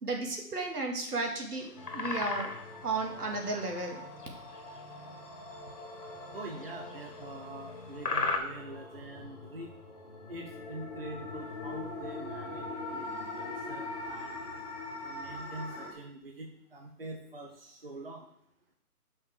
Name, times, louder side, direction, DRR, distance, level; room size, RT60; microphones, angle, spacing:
voice 1, 0.0-2.5 2.8-4.0, right 3 dB, 75° right, 0 dB, 2.2 m, -34 dB
sound 1, 1.6-2.8 3.4-3.6 4.0-4.8 5.6-5.8 6.4-7.4 8.0-8.4, left 3 dB, 85° left, 1.8 m, -34 dB
sound 2, 1.7-15.9, left 2 dB, 25° left, 1.3 m, -43 dB
voice 2, 6.3-9.7 10.3-13.1 13.3-14.4 15.0-18.3, right 1 dB, 40° right, 2 dB, 0.7 m, -44 dB
6.9 x 5.7 x 4.8 m, 0.74 s
hypercardioid pair, 175°, 46 cm